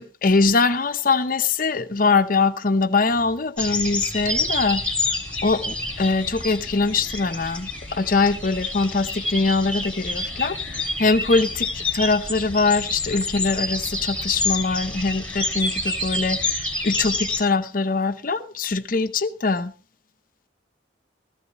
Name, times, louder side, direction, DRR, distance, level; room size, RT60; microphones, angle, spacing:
voice 1, 0.0-4.8 5.4-19.7, left 3 dB, 50° left, 0.8 m, -22 dB
sound 1, 3.0-3.5 4.1-4.7 5.3-17.3, equal, 40° right, 1.7 m, -46 dB
sound 2, 3.6-17.4, left 2 dB, 5° left, 2.4 m, -28 dB
16.5 x 14.5 x 3.0 m
head